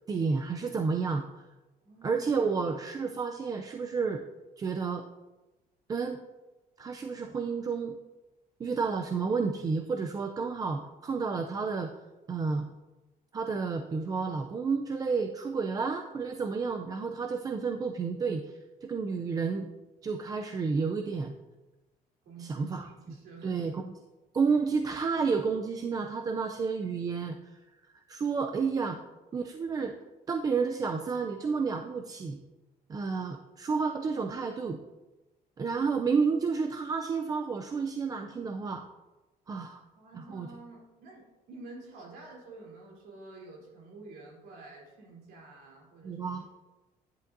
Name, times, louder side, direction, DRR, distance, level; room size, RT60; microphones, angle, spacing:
voice 1, 0.1-1.3 2.0-4.2 4.6-5.0 5.9-6.2 6.8-8.0 8.6-11.9 12.3-12.7 13.3-19.7 20.0-21.3 22.4-22.9 23.4-23.9 24.3-27.6 27.9-29.0 29.3-29.9 30.3-32.4 32.9-34.8 35.6-38.9 39.5-39.8 40.2-40.5 46.0-46.5, right 5 dB, 25° right, 5 dB, 0.4 m, -31 dB
voice 2, 1.8-2.3 22.2-23.7 39.9-46.2, right 2 dB, 80° right, -3 dB, 3.3 m, -49 dB
10.5 x 9.8 x 2.6 m, 1.1 s
cardioid pair, 160°, 16 cm